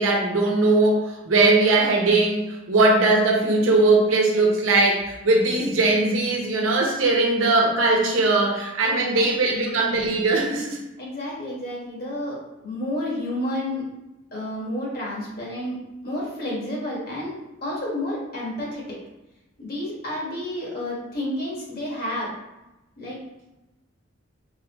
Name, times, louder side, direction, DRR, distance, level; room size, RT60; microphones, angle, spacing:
voice 1, 0.0-10.8, right 2 dB, 85° right, 0 dB, 0.9 m, -20 dB
voice 2, 8.8-9.5 11.0-13.8 14.3-15.8 16.0-17.3 17.6-19.0 19.6-22.3 23.0-23.2, left 1 dB, 50° left, -4 dB, 1.4 m, -30 dB
4.1 x 3.3 x 3.0 m, 0.99 s
head